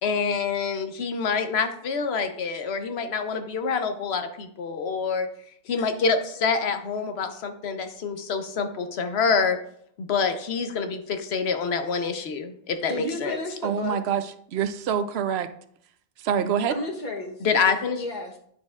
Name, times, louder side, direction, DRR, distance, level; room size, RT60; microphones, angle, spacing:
voice 1, 0.0-5.3 5.7-9.6 10.0-13.4 16.4-16.5 17.4-18.0, left 5 dB, 90° left, 7 dB, 1.0 m, -26 dB
voice 2, 12.9-14.0 16.7-17.5 18.0-18.4, left 2 dB, 50° left, 2 dB, 1.2 m, -32 dB
voice 3, 13.6-15.5 16.2-16.8, right 8 dB, 85° right, 11 dB, 0.8 m, -26 dB
9.3 x 6.4 x 2.4 m, 0.66 s
omnidirectional pair, 1.0 m